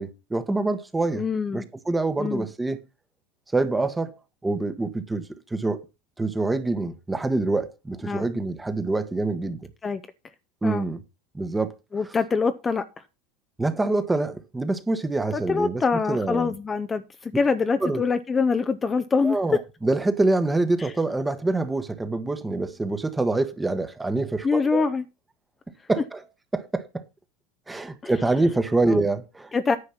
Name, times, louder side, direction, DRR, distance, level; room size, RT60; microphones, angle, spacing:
voice 1, 0.0-1.2 1.5-2.8 3.5-4.1 4.4-5.8 6.2-9.7 10.6-11.0 11.3-11.7 13.6-15.8 16.1-16.5 17.8-18.0 19.2-24.8 25.9-26.2 26.5-27.0 27.7-29.5, right 2 dB, 10° right, 1.2 m, -25 dB
voice 2, 1.2-1.6 2.2-2.4 8.0-8.3 9.8-10.0 10.6-10.9 11.9-12.9 15.3-19.4 20.8-20.9 24.4-25.0 28.0-28.1 28.9-29.0 29.5-29.8, left 4 dB, 20° left, 0.7 m, -24 dB
9.9 x 5.5 x 5.8 m
supercardioid pair, 105°, 0 cm